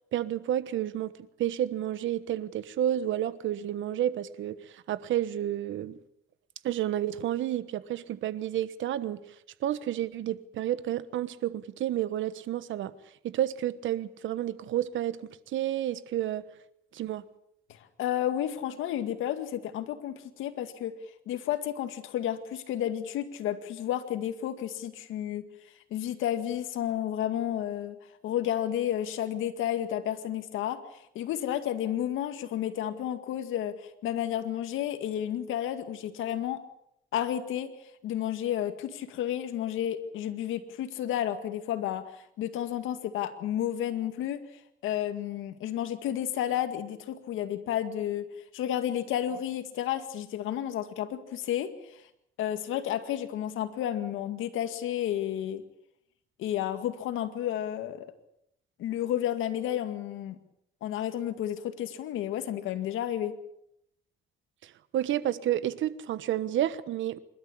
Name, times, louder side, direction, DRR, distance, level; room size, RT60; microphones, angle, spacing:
voice 1, 0.1-1.1 1.4-6.0 6.6-9.3 9.6-12.9 13.2-16.4 16.9-17.2 64.6-67.2, right 12 dB, 75° right, 1.2 m, -30 dB
voice 2, 17.7-20.9 21.3-25.4 25.9-28.0 28.2-36.6 37.1-37.7 38.0-44.4 44.8-48.3 48.5-52.0 52.4-55.6 56.4-58.1 58.8-60.4 60.8-63.3, left 11 dB, 90° left, 2.1 m, -31 dB
27.0 x 12.5 x 8.6 m
cardioid pair, 90°, 20 cm